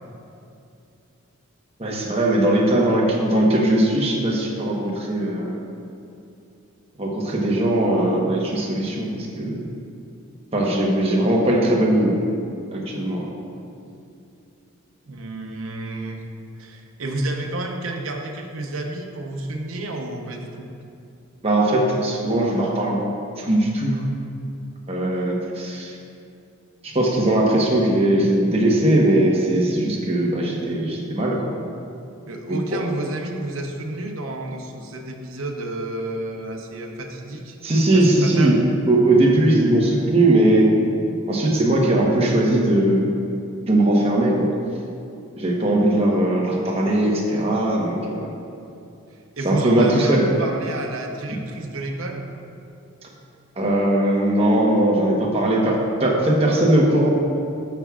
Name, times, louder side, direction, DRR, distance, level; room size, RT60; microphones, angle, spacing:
voice 1, 1.8-5.5 7.0-9.7 10.5-12.2 12.7-13.3 21.4-23.0 23.4-24.0 24.9-26.0 26.8-31.5 32.5-32.8 37.6-38.6 38.9-40.7 41.3-43.1 43.7-44.5 45.4-48.3 49.4-50.2 53.6-57.1, right 1 dB, 30° right, -3 dB, 1.1 m, -19 dB
voice 2, 15.1-16.2 16.6-20.7 32.3-37.6 37.9-38.6 49.4-52.3, right 2 dB, 75° right, 2 dB, 0.9 m, -30 dB
11.5 x 7.2 x 2.4 m, 2.6 s
head